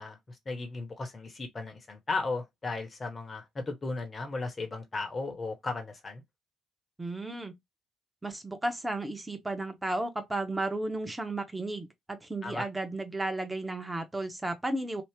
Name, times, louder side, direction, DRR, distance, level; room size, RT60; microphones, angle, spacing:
voice 1, 0.0-6.2 12.4-12.7, left 3 dB, 35° left, 1.3 m, -36 dB
voice 2, 7.0-7.6 8.2-15.0, right 2 dB, 15° right, 1.1 m, -34 dB
3.0 x 2.4 x 3.7 m
hypercardioid pair, 45°, 0 cm